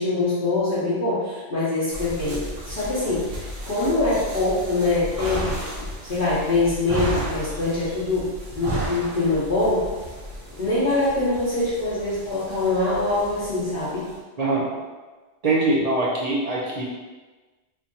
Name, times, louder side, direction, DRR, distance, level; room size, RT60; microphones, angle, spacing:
voice 1, 0.0-9.9 10.6-14.1, left 2 dB, 50° left, -11 dB, 1.0 m, -24 dB
sound 1, 1.9-14.2, right 1 dB, 85° right, 1.2 m, -34 dB
voice 2, 14.4-14.7 15.4-16.8, right 2 dB, 45° right, -4 dB, 0.5 m, -22 dB
4.4 x 2.7 x 2.6 m, 1.3 s
omnidirectional pair, 1.3 m